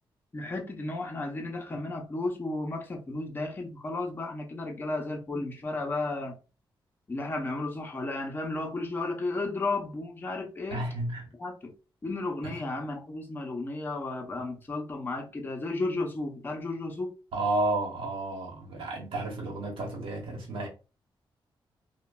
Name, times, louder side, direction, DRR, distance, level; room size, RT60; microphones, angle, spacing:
voice 1, 0.3-6.3 7.1-10.8 11.4-11.7 12.0-17.1, left 2 dB, 25° left, 0.6 m, -33 dB
voice 2, 10.7-11.2 12.4-12.6 17.3-20.7, right 2 dB, 80° right, 1.0 m, -31 dB
3.0 x 2.2 x 2.2 m
wide cardioid pair, 145°, 9 cm